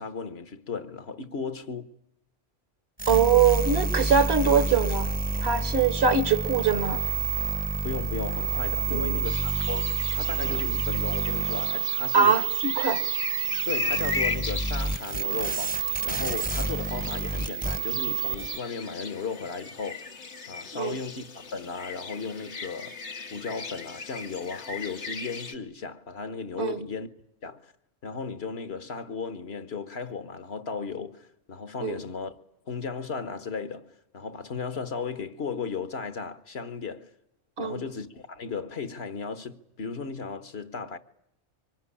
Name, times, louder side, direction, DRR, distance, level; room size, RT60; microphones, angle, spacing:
voice 1, 0.0-1.9 7.8-12.4 13.7-20.1 20.5-23.0 23.3-27.1 27.4-27.7 28.0-32.3 32.7-37.1 37.6-41.0, left 5 dB, 65° left, 1.5 m, -35 dB
sound 1, 3.0-18.6, right 4 dB, 10° left, 0.8 m, -28 dB
voice 2, 3.1-5.1 5.4-7.0 8.9-9.2 12.1-13.0 20.7-21.0 26.6-26.8 31.8-32.0 37.6-37.8, right 6 dB, 65° right, 1.5 m, -23 dB
sound 2, 9.2-25.5, left 4 dB, 85° left, 1.8 m, -38 dB
24.5 x 20.5 x 10.0 m
omnidirectional pair, 1.2 m